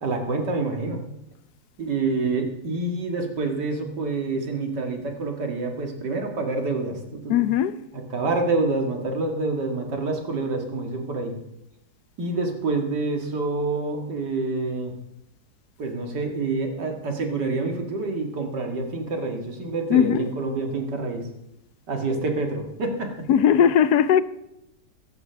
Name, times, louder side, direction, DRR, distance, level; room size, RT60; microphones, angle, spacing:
voice 1, 0.0-1.0 1.8-7.4 7.9-11.3 12.2-14.9 15.8-21.2 21.9-23.3, right 3 dB, 85° right, 2.5 m, -27 dB
voice 2, 7.3-7.8 19.9-20.3 23.3-24.2, left 9 dB, 75° left, 1.1 m, -18 dB
16.5 x 14.0 x 3.4 m
omnidirectional pair, 1.8 m